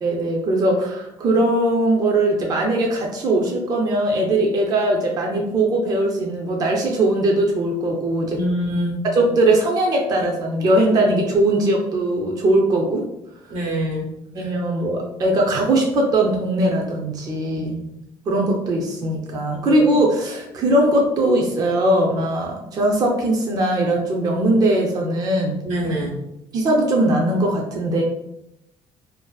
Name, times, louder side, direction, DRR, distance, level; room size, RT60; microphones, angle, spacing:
voice 1, 0.0-8.4 9.1-13.1 14.3-17.8 18.3-25.6 26.5-28.0, right 1 dB, 30° right, 0 dB, 0.4 m, -20 dB
voice 2, 8.3-9.0 13.5-14.0 14.4-14.5 17.5-17.8 19.5-19.8 25.6-26.2, equal, 90° right, -4 dB, 1.1 m, -25 dB
2.4 x 2.3 x 2.2 m, 0.82 s
cardioid pair, 150°, 12 cm